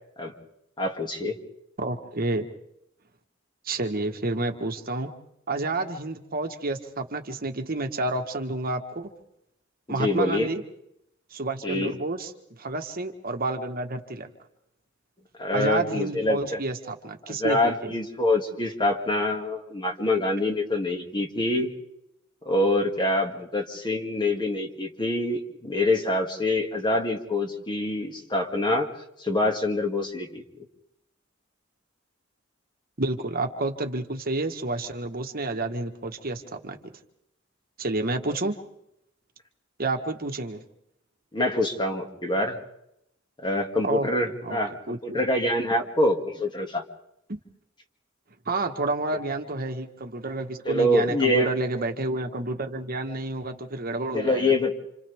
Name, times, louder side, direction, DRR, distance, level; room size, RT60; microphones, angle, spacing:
voice 1, 0.8-1.4 9.9-10.5 11.6-11.9 15.4-16.6 17.3-21.7 22.4-28.9 29.2-30.4 41.3-42.6 43.4-46.8 50.7-51.5 54.1-54.7, left 1 dB, 25° left, 3 dB, 2.3 m, -25 dB
voice 2, 1.8-2.5 3.6-5.1 5.5-9.1 9.9-10.6 11.3-14.3 15.5-17.9 33.0-36.8 37.8-38.6 39.8-40.6 43.8-44.6 44.9-45.2 47.3-47.4 48.4-54.5, right 2 dB, 45° right, 5 dB, 1.5 m, -30 dB
29.5 x 27.5 x 3.6 m, 0.81 s
head